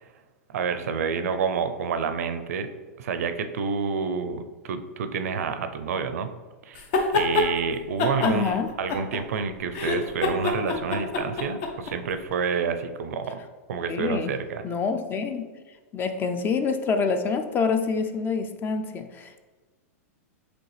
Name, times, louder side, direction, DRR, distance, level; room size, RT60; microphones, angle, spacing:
voice 1, 0.5-2.7 3.0-6.3 6.6-6.8 7.1-13.4 13.7-14.6, right 6 dB, 75° right, 9 dB, 0.5 m, -28 dB
sound 1, 6.8-7.5 8.0-9.4 9.7-11.9, left 3 dB, 55° left, 0.8 m, -25 dB
voice 2, 8.2-8.7 13.9-14.3 14.6-15.5 15.9-19.4, left 5 dB, 25° left, 8 dB, 0.4 m, -26 dB
5.0 x 3.3 x 3.2 m, 1.3 s
hypercardioid pair, 120°, 8 cm